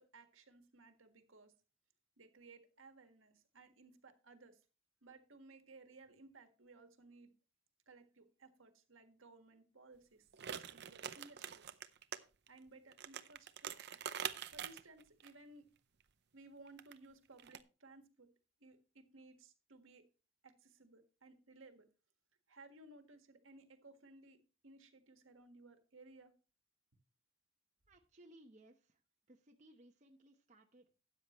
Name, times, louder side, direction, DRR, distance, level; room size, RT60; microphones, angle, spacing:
voice 1, 0.0-1.5 2.2-4.6 5.0-7.3 7.9-11.8 12.5-14.0 14.5-15.7 16.3-18.3 18.6-20.0 20.4-21.9 22.5-24.4 24.6-26.3, right 3 dB, 70° right, 7 dB, 1.7 m, -60 dB
sound 1, 10.3-12.2 12.5-12.6 12.9-15.3 16.7-17.0 17.4-17.6, right 8 dB, 55° right, 0.6 m, -45 dB
voice 2, 27.9-29.0 29.3-30.9, right 1 dB, 35° right, 2 dB, 1.0 m, -63 dB
13.0 x 9.2 x 3.1 m, 0.33 s
head